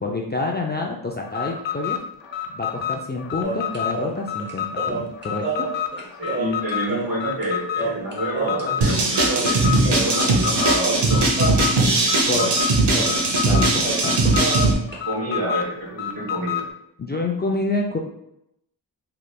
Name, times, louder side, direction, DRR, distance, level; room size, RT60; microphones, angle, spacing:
voice 1, 0.0-2.0 2.5-5.7 11.9-12.5 12.9-14.5 17.0-18.0, left 2 dB, 25° left, -1 dB, 0.3 m, -28 dB
Alarm, 1.2-16.7, left 9 dB, 85° left, 0.6 m, -29 dB
sound 1, 3.4-7.5 7.8-9.0 9.2-10.5 10.8-13.2 13.5-13.6 13.8-15.0, right 2 dB, 25° right, 0.8 m, -29 dB
voice 2, 6.0-11.3 15.0-16.7, right 1 dB, 50° right, -3 dB, 1.4 m, -28 dB
sound 2, 8.8-14.7, right 2 dB, 65° right, 0.8 m, -19 dB
3.1 x 3.0 x 2.2 m, 0.79 s
cardioid pair, 55°, 44 cm